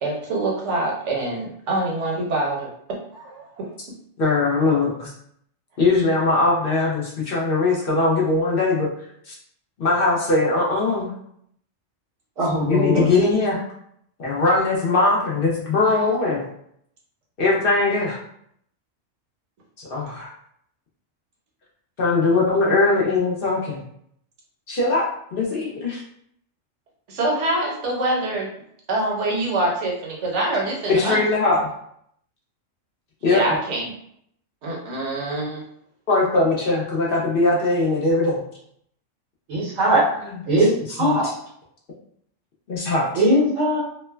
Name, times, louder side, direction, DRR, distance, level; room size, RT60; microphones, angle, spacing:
voice 1, 0.0-3.7 12.9-13.2 27.1-28.5 28.9-31.2 33.3-33.9 34.6-35.6, right 2 dB, 70° right, -1 dB, 1.0 m, -25 dB
voice 2, 4.2-5.1 5.8-8.9 9.3-9.4 9.8-11.1 12.6-13.6 14.2-16.4 17.4-18.2 19.8-20.3 22.0-23.8 24.7-25.0 25.3-26.0 30.9-31.7 33.2-33.4 36.1-38.4 41.0-41.2 42.7-43.1, left 3 dB, 55° left, -3 dB, 0.7 m, -20 dB
voice 3, 12.4-13.1 39.5-40.0 40.5-40.7 41.0-41.3 43.1-43.8, equal, 85° right, -6 dB, 1.4 m, -19 dB
3.0 x 2.0 x 2.2 m, 0.69 s
omnidirectional pair, 1.3 m